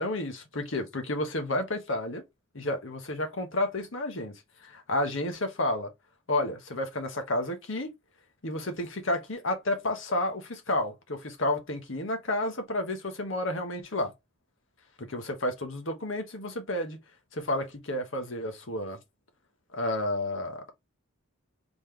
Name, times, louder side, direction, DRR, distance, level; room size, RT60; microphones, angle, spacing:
voice 1, 0.0-2.2 2.5-4.3 4.6-5.9 6.3-7.9 8.4-14.1 15.0-17.0 17.3-19.0 19.7-20.7, left 1 dB, 75° left, 1.3 m, -31 dB
4.2 x 3.7 x 3.2 m
head